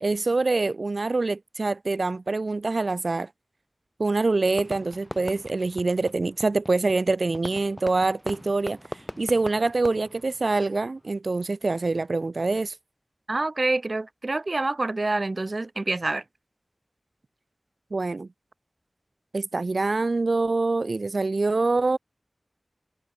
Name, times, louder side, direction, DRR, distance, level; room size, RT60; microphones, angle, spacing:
voice 1, 0.0-3.3 4.0-12.8 17.9-18.3 19.3-22.0, right 3 dB, 70° right, 1.8 m, -25 dB
Fireworks, 4.5-11.1, equal, 5° left, 5.1 m, -40 dB
voice 2, 13.3-16.2, right 2 dB, 55° right, 2.2 m, -27 dB
wide cardioid pair, 50°, 0 cm